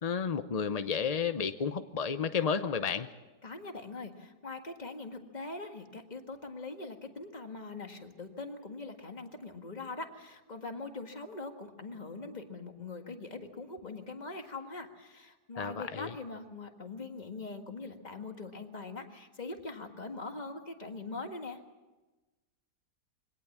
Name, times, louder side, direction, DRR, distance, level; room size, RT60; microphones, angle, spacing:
voice 1, 0.0-3.1 15.6-16.1, left 6 dB, 55° left, 10 dB, 0.4 m, -32 dB
voice 2, 3.4-21.6, left 3 dB, 25° left, 5 dB, 1.7 m, -42 dB
23.5 x 18.0 x 7.3 m, 1.1 s
omnidirectional pair, 1.8 m